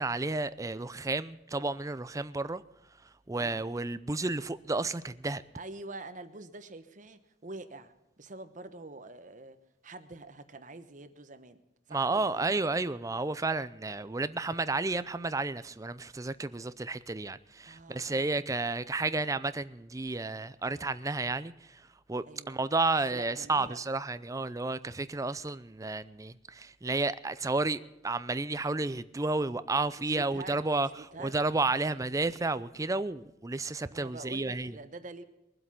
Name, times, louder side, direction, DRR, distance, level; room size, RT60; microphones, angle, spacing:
voice 1, 0.0-2.6 3.3-5.4 11.9-30.9 31.2-34.8, right 3 dB, 20° right, 0.5 m, -32 dB
voice 2, 5.5-9.6 9.8-11.6 11.9-12.5 17.7-18.4 22.3-22.6 23.1-23.8 29.7-31.4 33.9-35.2, right 2 dB, 45° right, 1.1 m, -46 dB
22.0 x 7.9 x 5.8 m
head